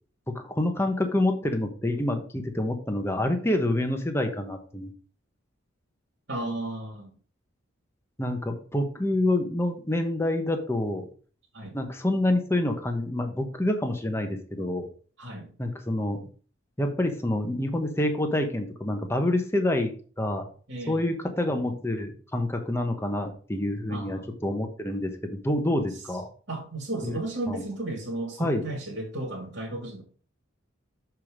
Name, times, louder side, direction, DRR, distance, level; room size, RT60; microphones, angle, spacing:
voice 1, 0.3-4.9 8.2-11.1 11.7-14.9 15.6-16.3 16.8-19.9 20.2-20.5 20.9-26.3 27.0-27.2 27.5-27.6 28.4-28.6, left 1 dB, 10° left, 4 dB, 1.0 m, -27 dB
voice 2, 6.3-7.1 11.5-11.8 15.2-15.5 20.7-21.1 23.9-24.3 25.9-26.0 26.5-30.0, right 2 dB, 65° right, -1 dB, 2.4 m, -34 dB
7.0 x 4.6 x 4.9 m, 0.42 s
head